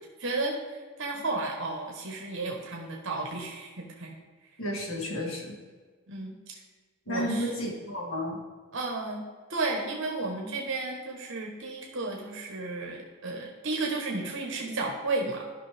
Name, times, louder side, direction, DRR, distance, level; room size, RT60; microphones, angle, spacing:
voice 1, 0.2-4.2 6.1-6.6 7.1-7.4 8.7-9.2 9.5-15.4, right 2 dB, 60° right, 1 dB, 1.1 m, -33 dB
voice 2, 4.6-5.6 7.1-8.4, equal, 70° left, 0 dB, 1.8 m, -32 dB
13.0 x 5.6 x 3.4 m, 1.5 s
head